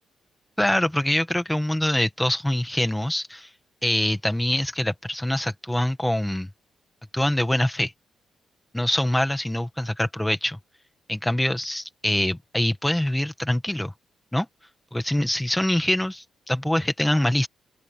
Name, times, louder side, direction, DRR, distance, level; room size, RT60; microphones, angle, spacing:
voice 1, 0.6-3.5 3.8-6.5 7.1-7.9 8.7-10.6 11.1-13.9 14.3-14.5 14.9-17.5, left 1 dB, 5° left, 1.7 m, -24 dB
open air
cardioid pair, 160°, 0 cm